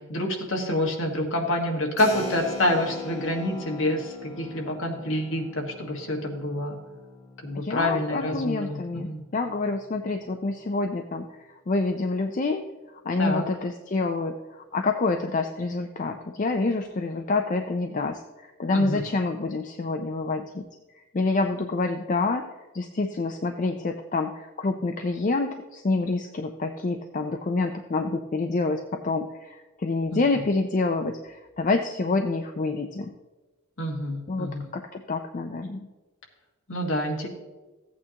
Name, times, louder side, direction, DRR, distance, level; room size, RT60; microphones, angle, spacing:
voice 1, 0.1-6.8 7.4-9.2 13.2-13.4 18.7-19.0 30.1-30.2 33.8-34.6 36.7-37.3, left 1 dB, 60° left, 1 dB, 1.6 m, -27 dB
Keyboard (musical), 2.0-10.3, left 3 dB, 15° left, 2.6 m, -41 dB
voice 2, 7.5-11.4 11.7-12.6 13.0-20.6 20.9-22.5 22.7-33.1 34.3-35.9, left 3 dB, 35° left, 5 dB, 0.4 m, -27 dB
14.5 x 8.5 x 2.9 m, 1.2 s
head